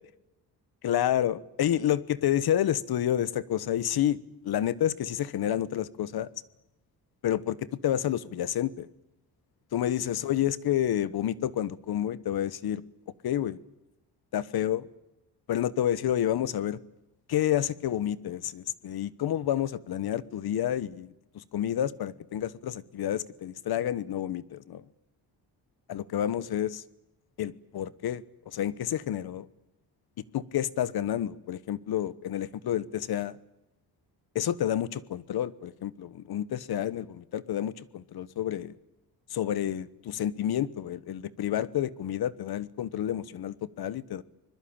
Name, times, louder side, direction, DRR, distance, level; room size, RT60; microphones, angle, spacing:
voice 1, 0.8-4.2 4.4-6.3 7.2-7.6 7.8-8.9 9.7-12.8 13.2-13.6 14.3-14.9 15.5-16.8 17.3-24.8 25.9-26.8 27.4-28.2 28.5-29.5 30.3-33.4 34.3-38.7 39.3-44.2, left 11 dB, 70° left, 1.2 m, -29 dB
25.0 x 21.5 x 8.8 m
cardioid pair, 130°, 39 cm